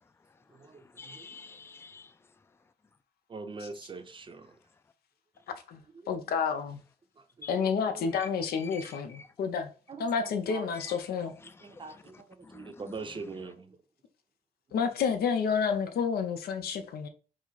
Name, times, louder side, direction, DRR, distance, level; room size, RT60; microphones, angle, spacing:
voice 1, 0.0-2.5 7.4-7.5 8.1-8.3 8.5-9.3 10.7-11.0 11.4-13.5, left 4 dB, 15° left, 0.4 m, -50 dB
voice 2, 0.6-1.3 3.3-4.5 7.9-8.1 9.9-10.7 11.6-13.8, right 4 dB, 30° right, 0.6 m, -43 dB
voice 3, 6.1-6.8 7.5-9.7 10.0-11.3 14.7-17.1, left 6 dB, 85° left, 0.6 m, -30 dB
4.8 x 2.0 x 4.0 m
cardioid pair, 110°, 16 cm